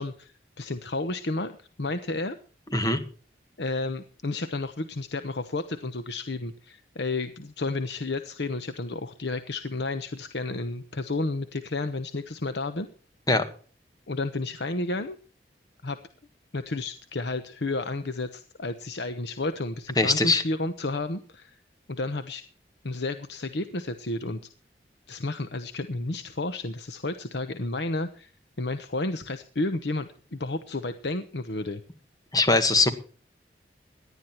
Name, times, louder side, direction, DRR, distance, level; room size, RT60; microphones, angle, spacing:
voice 1, 0.0-2.4 3.6-12.9 14.1-15.2 15.8-16.0 16.5-21.6 21.9-22.4 22.8-24.4 25.1-28.3 28.6-31.8, left 2 dB, 75° left, 11 dB, 1.0 m, -31 dB
voice 2, 20.0-20.4 32.3-32.9, left 2 dB, 20° left, 10 dB, 1.6 m, -21 dB
18.0 x 11.5 x 4.5 m, 0.41 s
head